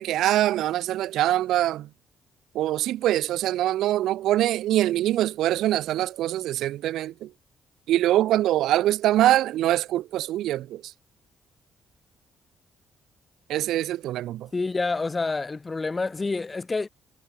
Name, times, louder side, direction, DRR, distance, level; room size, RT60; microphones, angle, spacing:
voice 1, 0.0-1.9 2.5-7.3 7.9-10.9 13.5-14.5, right 13 dB, 85° right, 3.3 m, -24 dB
voice 2, 14.5-16.9, left 3 dB, 25° left, 4.2 m, -28 dB
cardioid pair, 90°, 0 cm